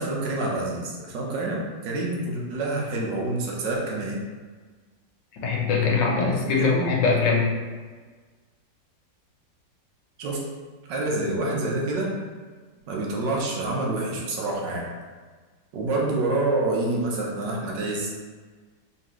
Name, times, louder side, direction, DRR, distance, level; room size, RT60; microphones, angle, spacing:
voice 1, 0.0-4.2 6.6-6.9 10.2-10.4 10.9-12.1 12.9-14.9 15.7-18.1, right 2 dB, 75° right, -2 dB, 1.4 m, -27 dB
voice 2, 5.4-7.5, left 4 dB, 80° left, -2 dB, 1.5 m, -22 dB
4.1 x 3.1 x 2.9 m, 1.5 s
omnidirectional pair, 1.9 m